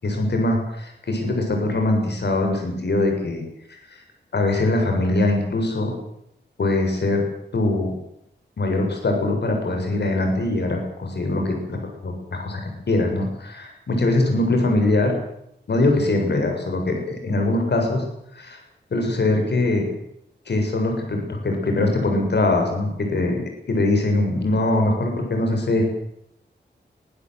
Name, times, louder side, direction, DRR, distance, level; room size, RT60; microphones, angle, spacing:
voice 1, 0.0-3.4 3.7-3.8 4.3-5.9 6.6-7.2 7.5-7.9 8.6-11.8 12.0-12.1 12.4-12.6 12.9-15.1 15.7-18.0 18.3-18.6 18.9-19.8 20.5-25.8, left 2 dB, 65° left, 3 dB, 7.1 m, -22 dB
24.0 x 15.5 x 8.2 m, 0.75 s
wide cardioid pair, 105°, 18 cm